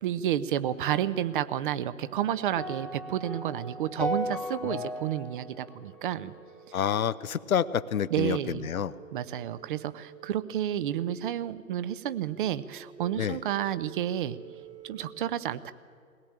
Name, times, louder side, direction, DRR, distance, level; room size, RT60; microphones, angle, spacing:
voice 1, 0.0-6.3 8.1-8.7 9.1-14.4 14.8-15.7, right 11 dB, 35° right, 15 dB, 0.7 m, -30 dB
sound 1, 1.8-15.0, right 8 dB, 15° right, 1.5 m, -52 dB
sound 2, 2.6-6.9, left 1 dB, ahead, 0.5 m, -36 dB
voice 2, 6.7-8.9 13.2-13.4, left 8 dB, 70° left, 15 dB, 0.7 m, -28 dB
21.0 x 17.5 x 8.8 m, 2.2 s
figure-of-eight pair, 115°, 43 cm